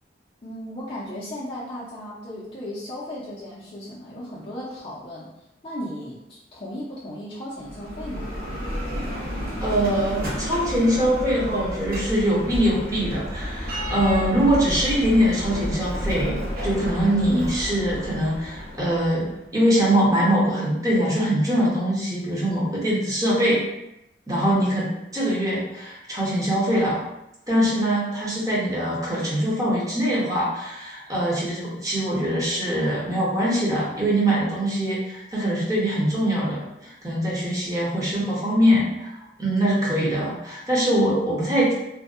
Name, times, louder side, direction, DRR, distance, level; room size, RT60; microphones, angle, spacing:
voice 1, 0.4-5.3 5.6-8.4 24.4-24.6, equal, 30° left, -8 dB, 0.4 m, -36 dB
Bell, 7.5-19.4, equal, 55° right, 0.6 m, -31 dB
voice 2, 9.6-23.6 24.3-24.8 25.1-27.0 27.5-39.1 39.4-41.7, equal, 20° right, -6 dB, 0.7 m, -23 dB
2.6 x 2.1 x 2.4 m, 0.87 s
head